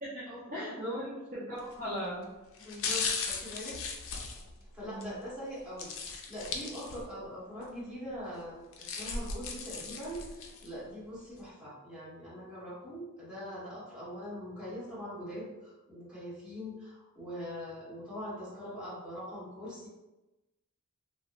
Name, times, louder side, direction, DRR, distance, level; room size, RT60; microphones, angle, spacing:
voice 1, 0.0-2.2 4.8-5.2, equal, 40° right, -9 dB, 0.8 m, -38 dB
voice 2, 0.9-1.2 2.6-3.8 4.7-19.9, equal, 5° right, -11 dB, 1.1 m, -42 dB
sound 1, 1.6-1.9 2.5-5.1 5.8-7.2 7.6-7.7 8.5-10.7 11.2-11.3, left 4 dB, 60° left, 0.4 m, -37 dB
2.9 x 2.0 x 2.5 m, 1.0 s
head